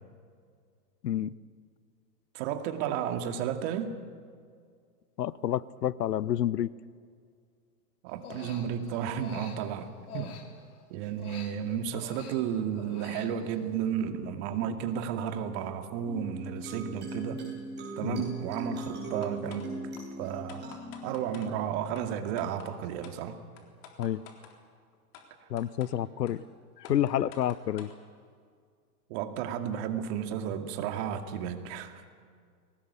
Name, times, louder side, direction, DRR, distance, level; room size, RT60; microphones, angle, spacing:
voice 1, 1.0-1.3 5.2-6.7 18.0-18.2 24.0-24.2 25.5-26.4 26.8-27.9, left 11 dB, 85° left, 0.9 m, -29 dB
voice 2, 2.3-3.9 8.0-10.4 10.9-17.4 18.0-19.7 20.2-23.4 29.1-32.0, right 8 dB, 45° right, 2.4 m, -33 dB
Human voice, 8.1-10.8 11.2-13.7, left 7 dB, 65° left, 3.5 m, -47 dB
sound 1, 16.0-23.0, right 2 dB, 20° right, 7.9 m, -41 dB
sound 2, 19.2-19.7 20.0-20.1 20.5-21.5 21.9-22.0 22.4-22.7 23.0-23.2 23.6-24.5 25.1-25.2 25.6-25.9 26.3-26.4 26.8-28.0, left 8 dB, 40° left, 3.8 m, -49 dB
22.5 x 19.0 x 8.3 m
hypercardioid pair, 130°, 47 cm